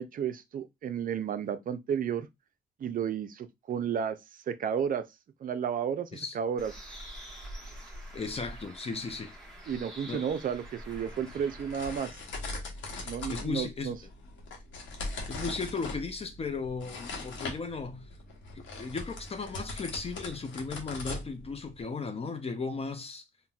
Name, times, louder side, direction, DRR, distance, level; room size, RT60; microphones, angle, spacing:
voice 1, 0.0-2.3 2.8-4.2 4.5-5.1 5.4-6.7 9.7-12.1 13.0-14.0, right 8 dB, 45° right, 0.4 m, -32 dB
Bird, 6.6-12.0, right 1 dB, ahead, 1.0 m, -46 dB
voice 2, 8.1-9.3 10.1-10.2 12.9-13.9 15.3-18.1 18.5-23.2, left 4 dB, 30° left, 0.5 m, -36 dB
sound 1, 10.7-21.8, left 2 dB, 70° left, 1.0 m, -41 dB
3.9 x 2.2 x 2.3 m
cardioid pair, 90°, 20 cm